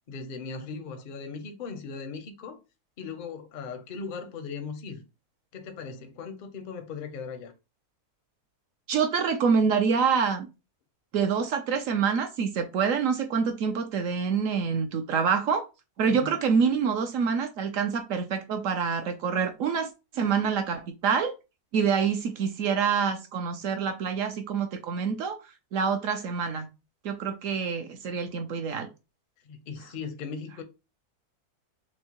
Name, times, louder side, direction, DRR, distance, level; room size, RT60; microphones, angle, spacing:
voice 1, 0.1-2.6 3.0-5.0 5.5-7.5 16.1-16.4 29.4-30.6, left 5 dB, 55° left, 0.6 m, -38 dB
voice 2, 8.9-10.5 11.1-15.7 16.0-21.3 21.7-25.4 25.7-26.7 27.0-28.9, right 6 dB, 70° right, 0.9 m, -26 dB
6.2 x 2.1 x 2.9 m
omnidirectional pair, 1.6 m